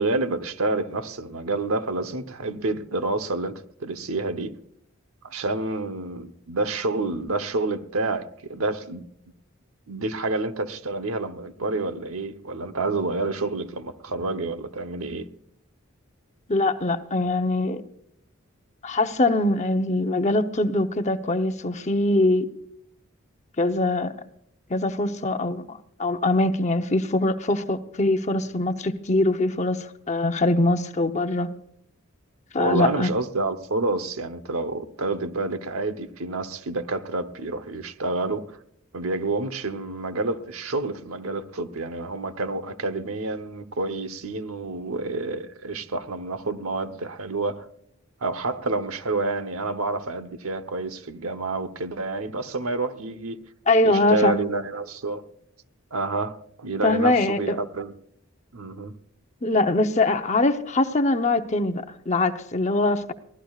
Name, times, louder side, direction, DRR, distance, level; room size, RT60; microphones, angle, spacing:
voice 1, 0.0-4.5 5.2-9.0 9.9-15.3 32.6-38.6 38.9-47.7 48.2-53.4 53.8-55.3 55.9-57.9 58.5-58.9, right 3 dB, 85° right, 1.0 m, -28 dB
voice 2, 16.5-17.8 18.8-22.4 23.6-24.1 24.7-31.5 32.5-33.1 53.7-54.4 56.8-57.4 59.4-63.1, left 2 dB, 35° left, 0.8 m, -22 dB
23.5 x 16.5 x 2.4 m
head